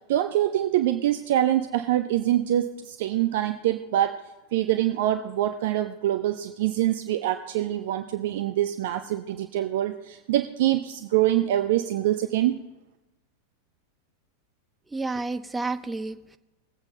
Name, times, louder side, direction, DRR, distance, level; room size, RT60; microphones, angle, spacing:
voice 1, 0.1-4.2 4.5-12.6, right 13 dB, 55° right, 9 dB, 0.6 m, -25 dB
voice 2, 14.9-16.4, right 3 dB, 10° right, 10 dB, 0.6 m, -30 dB
20.0 x 8.2 x 3.8 m, 1.0 s
figure-of-eight pair, 90°, 0 cm